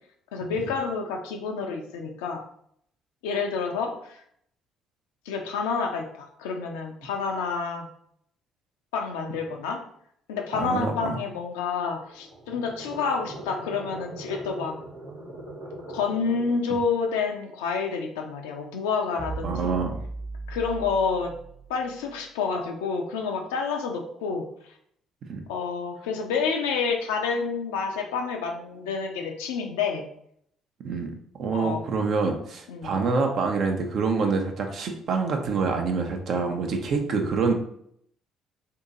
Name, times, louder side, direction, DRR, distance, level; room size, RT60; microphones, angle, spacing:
voice 1, 0.3-2.4 3.2-4.2 5.3-7.9 8.9-9.8 10.3-14.8 15.9-19.7 20.5-21.3 21.7-24.7 25.5-30.0 31.5-31.8 32.7-32.9, left 5 dB, 80° left, 3 dB, 0.5 m, -29 dB
voice 2, 10.5-11.2 19.4-20.0 25.3-25.4 30.8-31.1 31.4-37.5, right 4 dB, 60° right, 3 dB, 0.7 m, -26 dB
sound 1, 11.9-16.7, right 1 dB, 85° right, 1.2 m, -41 dB
sound 2, 19.2-22.6, right 3 dB, 40° right, 1.3 m, -38 dB
2.8 x 2.7 x 3.7 m, 0.68 s
hypercardioid pair, 50°, 0 cm